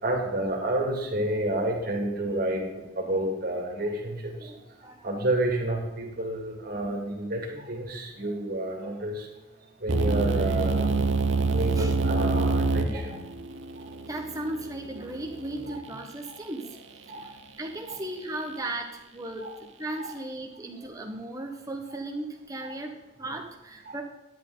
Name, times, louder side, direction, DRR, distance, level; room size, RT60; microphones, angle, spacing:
voice 1, 0.0-2.6 3.0-4.5 5.0-9.3 9.8-10.9 11.5-13.2 13.8-13.9 15.7-15.8 17.1-17.3 17.9-18.0 19.4-19.5 20.0-20.1 22.6-22.7 23.9-24.0, right 1 dB, 50° right, -1 dB, 2.3 m, -30 dB
sound 1, 9.9-15.8, right 3 dB, 65° right, 0.7 m, -27 dB
voice 2, 14.0-16.8 17.1-17.3 17.6-24.0, right 1 dB, 15° right, 2 dB, 1.2 m, -36 dB
10.5 x 8.2 x 3.9 m, 1.0 s
head